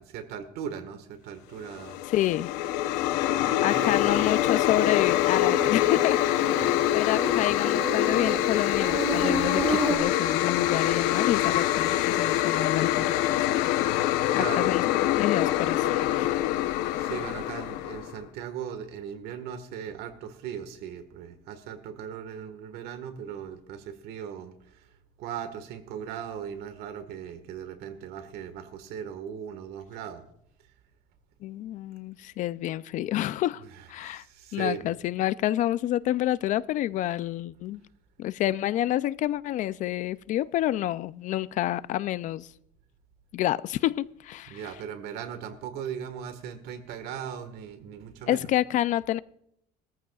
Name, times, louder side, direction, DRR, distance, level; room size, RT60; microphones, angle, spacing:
voice 1, 0.0-2.0 3.0-4.3 6.6-6.7 14.3-14.7 16.3-16.4 17.0-24.9 25.2-30.2 33.6-34.9 44.5-48.5, right 8 dB, 70° right, 1.6 m, -38 dB
sound 1, 1.7-18.2, left 13 dB, 90° left, 0.8 m, -25 dB
voice 2, 2.1-2.5 3.6-13.2 14.4-14.8 15.2-16.5 31.4-33.6 33.9-34.2 34.5-37.8 38.2-42.5 43.3-44.6 48.3-49.2, left 13 dB, 50° left, 0.4 m, -28 dB
Insect, 3.7-10.0, right 2 dB, 5° right, 2.0 m, -33 dB
20.5 x 14.5 x 2.4 m
cardioid pair, 145°, 17 cm